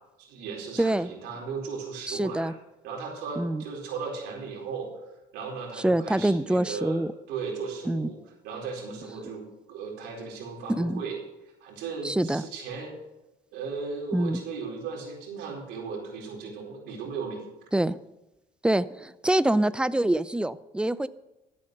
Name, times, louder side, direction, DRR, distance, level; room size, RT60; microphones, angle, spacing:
voice 1, 0.2-2.5 2.8-4.9 5.3-7.0 7.3-8.2 8.4-11.2 11.6-13.0 13.5-17.4, right 5 dB, 90° right, -1 dB, 4.5 m, -36 dB
voice 2, 0.8-1.1 2.1-2.5 3.4-3.6 5.8-7.1 7.9-8.1 10.7-11.0 12.0-12.4 14.1-14.4 17.7-18.0 18.6-21.1, right 1 dB, 5° right, 16 dB, 0.5 m, -25 dB
13.5 x 8.6 x 6.6 m, 0.98 s
cardioid pair, 110°, 17 cm